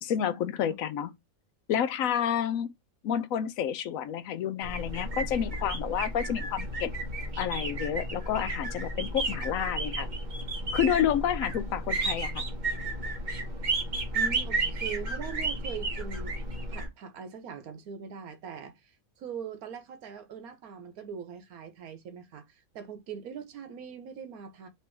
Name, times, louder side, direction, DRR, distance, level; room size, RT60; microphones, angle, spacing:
voice 1, 0.0-1.1 1.7-2.7 3.0-6.9 7.4-10.1 10.7-12.4, left 9 dB, 75° left, 1.0 m, -29 dB
sound 1, 4.6-16.9, right 2 dB, 35° right, 1.1 m, -32 dB
voice 2, 14.1-16.4 16.7-24.7, right 7 dB, 85° right, 1.3 m, -41 dB
3.4 x 3.0 x 4.4 m
omnidirectional pair, 1.5 m